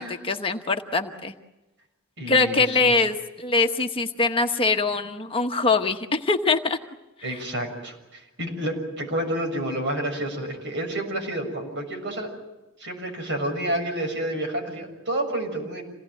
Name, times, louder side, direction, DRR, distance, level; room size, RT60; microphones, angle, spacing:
voice 1, 0.0-1.3 2.3-6.8, left 3 dB, 25° left, 4 dB, 1.1 m, -23 dB
voice 2, 2.2-2.9 7.2-12.3 12.8-15.8, right 1 dB, 60° right, 4 dB, 6.8 m, -29 dB
27.5 x 18.5 x 9.2 m, 1.0 s
head